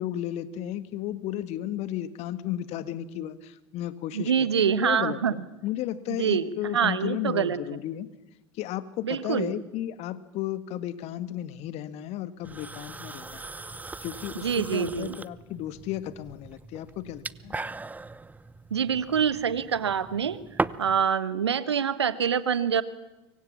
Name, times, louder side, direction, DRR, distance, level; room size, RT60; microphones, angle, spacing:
voice 1, 0.0-4.3 4.6-8.1 8.6-13.4 14.0-17.5, left 12 dB, 50° left, 13 dB, 1.7 m, -34 dB
voice 2, 4.1-5.3 6.1-7.6 9.0-9.5 14.4-15.2 18.7-20.4 20.8-22.8, right 7 dB, 80° right, 16 dB, 1.2 m, -25 dB
sound 1, 12.4-21.0, right 3 dB, 10° right, 0.8 m, -38 dB
25.5 x 24.0 x 7.4 m, 1.0 s
figure-of-eight pair, 70°, 14 cm